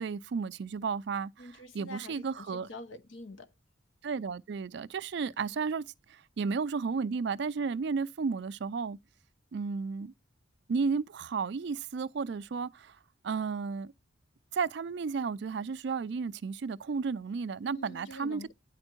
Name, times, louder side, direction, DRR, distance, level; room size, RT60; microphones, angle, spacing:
voice 1, 0.0-2.7 4.0-9.0 9.5-10.1 10.7-13.0 13.2-13.9 14.5-18.4, right 5 dB, 55° right, 0.4 m, -33 dB
voice 2, 1.4-3.5 17.7-18.5, left 1 dB, 65° left, 0.9 m, -46 dB
9.7 x 4.4 x 4.4 m
head